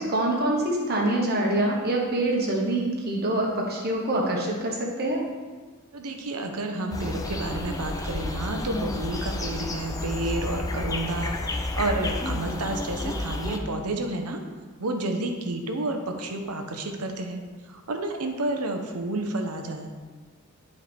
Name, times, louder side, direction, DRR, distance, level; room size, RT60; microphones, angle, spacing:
voice 1, 0.0-5.2, right 1 dB, 45° right, -1 dB, 1.3 m, -25 dB
voice 2, 5.9-14.4 14.8-17.4 17.7-19.9, right 2 dB, 90° right, 4 dB, 0.9 m, -30 dB
sound 1, 6.9-13.6, left 2 dB, 15° left, 0.4 m, -31 dB
11.0 x 4.7 x 3.4 m, 1.4 s
head